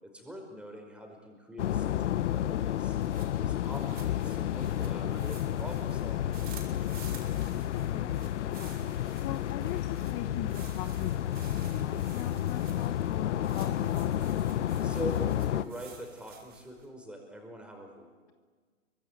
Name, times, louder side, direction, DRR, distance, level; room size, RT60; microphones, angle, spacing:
voice 1, 0.0-2.0 2.3-3.0 3.4-6.5 14.8-18.2, right 1 dB, 5° right, 2 dB, 5.1 m, -43 dB
sound 1, 1.6-15.7, left 11 dB, 60° left, 1.1 m, -31 dB
voice 2, 1.9-2.5 7.3-8.8 9.2-14.3, left 12 dB, 25° left, 10 dB, 1.0 m, -41 dB
sound 2, 2.9-16.9, right 6 dB, 25° right, 5.7 m, -53 dB
26.0 x 24.0 x 9.2 m, 1.5 s
hypercardioid pair, 145°, 40 cm